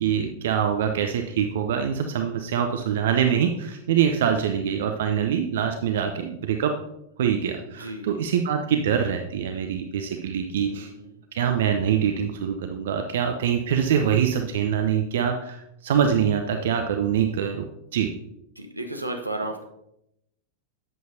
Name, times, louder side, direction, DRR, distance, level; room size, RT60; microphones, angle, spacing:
voice 1, 0.0-6.8 7.2-10.9 11.3-18.1, right 8 dB, 60° right, 5 dB, 0.6 m, -24 dB
voice 2, 7.7-8.1 8.6-8.7 10.6-11.2 18.6-19.6, right 2 dB, 85° right, 3 dB, 1.0 m, -34 dB
11.0 x 7.6 x 2.7 m, 0.81 s
figure-of-eight pair, 90°, 0 cm